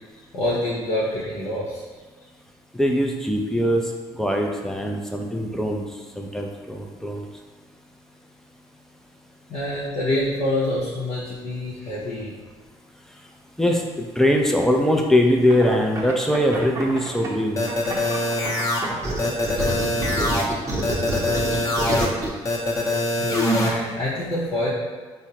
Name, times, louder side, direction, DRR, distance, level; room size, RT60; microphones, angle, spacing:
voice 1, 0.3-1.8 9.5-12.3 23.2-24.7, left 1 dB, 60° left, -8 dB, 0.8 m, -26 dB
voice 2, 2.7-3.9 4.1-5.8 6.2-7.3 13.6-17.6, equal, 5° left, 1 dB, 0.5 m, -21 dB
sound 1, 15.5-17.3 17.7-22.3, right 2 dB, 25° right, 0.8 m, -28 dB
sound 2, 17.6-18.8 19.2-20.4 20.8-22.1 22.4-23.7, left 1 dB, 25° left, 0.8 m, -23 dB
3.6 x 2.1 x 2.9 m, 1.4 s
supercardioid pair, 60°, 12 cm